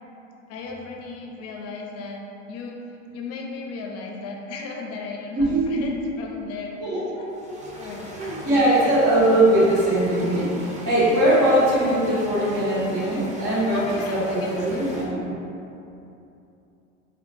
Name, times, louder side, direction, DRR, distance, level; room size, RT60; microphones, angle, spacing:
voice 1, 0.5-2.9 3.1-6.7 7.1-7.2 7.7-8.1 8.5-8.9 13.7-14.9, left 4 dB, 40° left, 1 dB, 0.4 m, -35 dB
voice 2, 5.4-5.8 6.8-7.6 8.1-15.2, right 1 dB, 65° right, -8 dB, 1.5 m, -21 dB
sound 1, 7.3-15.0, equal, 20° right, 0.6 m, -40 dB
4.7 x 2.4 x 2.5 m, 2.8 s
hypercardioid pair, 90°, 38 cm